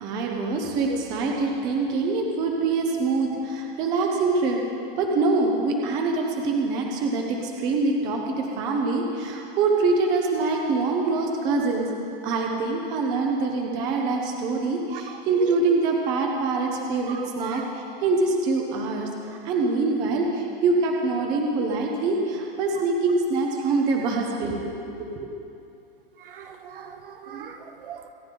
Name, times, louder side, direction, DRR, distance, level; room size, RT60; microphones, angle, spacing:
voice 1, 0.0-4.6 5.0-11.9 12.2-25.3, right 3 dB, 15° right, 1 dB, 0.6 m, -24 dB
voice 2, 17.1-17.6 26.2-28.1, right 8 dB, 65° right, 6 dB, 1.3 m, -39 dB
25.0 x 9.6 x 3.8 m, 2.7 s
supercardioid pair, 175°, 29 cm